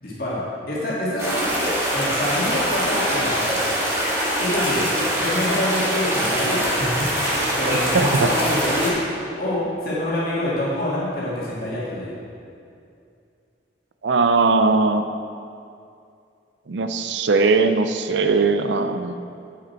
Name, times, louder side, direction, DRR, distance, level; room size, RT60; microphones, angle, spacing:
voice 1, 0.0-0.4 0.7-1.5 1.9-3.9 4.4-9.0 9.3-12.1, left 1 dB, 55° left, -8 dB, 2.3 m, -26 dB
Small river, 1.2-8.9, equal, 15° right, 1.9 m, -23 dB
voice 2, 7.9-8.3 14.0-15.0 16.7-19.1, right 3 dB, 80° right, 9 dB, 0.5 m, -19 dB
9.4 x 8.0 x 4.4 m, 2.5 s
head